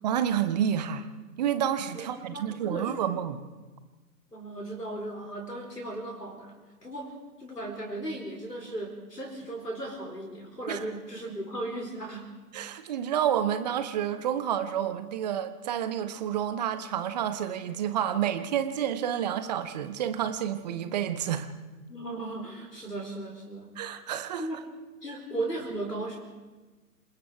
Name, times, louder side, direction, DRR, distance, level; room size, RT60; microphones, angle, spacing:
voice 1, 0.0-1.1 1.4-3.4 10.7-10.8 12.5-21.5 23.8-24.4, right 9 dB, 25° right, 11 dB, 1.2 m, -29 dB
voice 2, 1.9-3.1 4.3-7.1 7.4-12.4 21.9-23.7 24.4-24.6 25.0-26.2, right 1 dB, 90° left, 1 dB, 4.8 m, -36 dB
27.5 x 20.0 x 4.8 m, 1.2 s
figure-of-eight pair, 130°, 47 cm